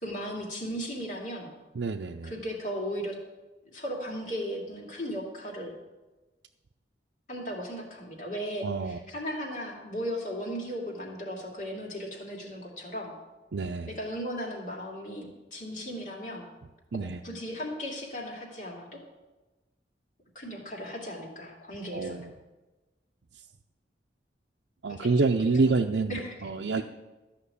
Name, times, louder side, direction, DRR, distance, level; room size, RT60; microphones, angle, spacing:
voice 1, 0.0-1.5 2.2-3.2 3.7-5.8 7.3-13.1 13.9-16.5 17.2-19.0 20.3-22.2 24.9-25.7 26.1-26.5 26.8-26.9, equal, 45° left, -1 dB, 2.5 m, -36 dB
voice 2, 1.8-2.3 8.6-9.0 13.5-13.9 16.9-17.2 21.9-22.3 24.8-26.1 26.4-26.8, right 3 dB, 80° right, 3 dB, 0.5 m, -27 dB
13.5 x 5.9 x 8.3 m, 1.1 s
head